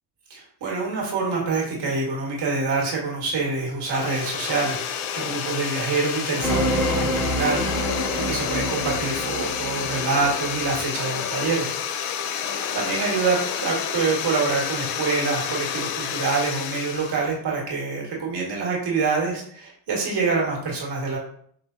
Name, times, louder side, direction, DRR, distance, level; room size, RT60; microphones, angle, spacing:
voice 1, 0.3-7.6 8.2-11.7 12.7-21.2, right 4 dB, 55° right, -2 dB, 2.0 m, -26 dB
sound 1, 3.8-17.3, left 8 dB, 90° left, 0.6 m, -30 dB
Fire, 3.9-5.5 6.8-7.3 7.6-11.8 12.3-14.1, left 5 dB, 45° left, 0.9 m, -37 dB
sound 2, 6.4-10.7, equal, 5° left, 1.3 m, -27 dB
5.5 x 3.3 x 2.7 m, 0.62 s
cardioid pair, 105°, 47 cm